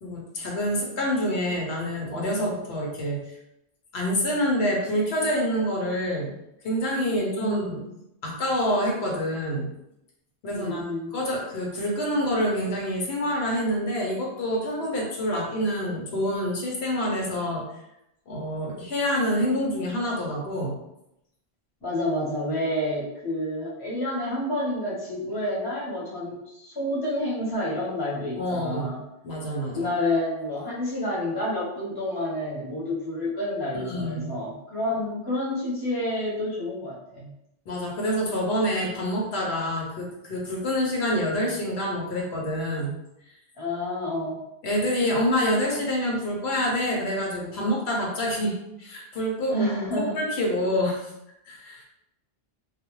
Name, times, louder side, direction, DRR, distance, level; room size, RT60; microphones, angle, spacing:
voice 1, 0.0-3.3 3.9-6.3 6.6-7.8 8.2-9.8 10.4-10.8 11.1-17.6 18.3-20.8 28.4-28.9 29.2-29.9 33.7-34.3 37.7-42.9 44.6-49.9 50.1-51.1 51.5-51.8, equal, 85° left, -1 dB, 0.9 m, -27 dB
voice 2, 7.2-7.8 10.5-11.1 21.8-29.0 29.7-37.3 43.6-44.4 49.5-50.2, left 1 dB, 25° left, -6 dB, 0.8 m, -29 dB
2.3 x 2.1 x 3.0 m, 0.84 s
omnidirectional pair, 1.0 m